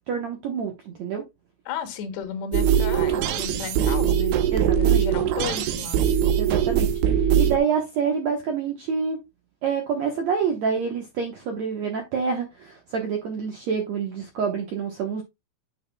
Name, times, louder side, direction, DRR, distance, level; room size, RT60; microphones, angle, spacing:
voice 1, 0.1-1.2 4.5-5.1 6.4-9.2 9.6-15.2, right 6 dB, 70° right, 1.6 m, -27 dB
voice 2, 1.7-4.4 4.7-6.0, left 8 dB, 90° left, 3.5 m, -34 dB
sound 1, 2.5-7.6, right 9 dB, 85° right, 3.1 m, -21 dB
9.2 x 7.8 x 2.2 m
omnidirectional pair, 4.7 m